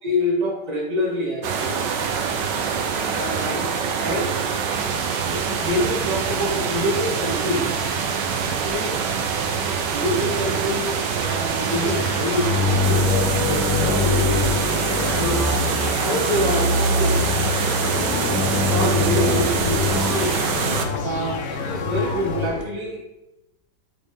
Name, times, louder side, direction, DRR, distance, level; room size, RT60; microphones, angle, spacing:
voice 1, 0.0-1.8 3.1-3.6 4.0-4.4 5.2-7.9 8.4-9.0 9.9-15.5 16.0-17.3 18.0-20.3 21.0-23.0, equal, 25° right, -3 dB, 1.7 m, -26 dB
sound 1, 1.4-20.8, right 6 dB, 80° right, 1.4 m, -24 dB
sound 2, 11.6-22.6, left 4 dB, 60° left, 1.2 m, -24 dB
9.1 x 5.2 x 3.5 m, 0.92 s
omnidirectional pair, 1.9 m